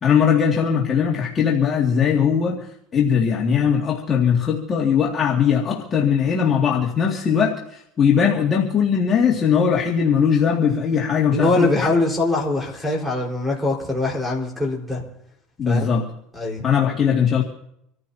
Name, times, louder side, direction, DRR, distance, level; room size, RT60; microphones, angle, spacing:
voice 1, 0.0-2.6 2.9-11.9 15.6-16.1 16.6-17.4, left 7 dB, 30° left, -3 dB, 2.2 m, -19 dB
voice 2, 11.3-15.0 15.7-15.9 16.3-16.6, left 2 dB, ahead, 1 dB, 4.5 m, -22 dB
26.5 x 14.0 x 2.8 m, 0.73 s
supercardioid pair, 120°, 0 cm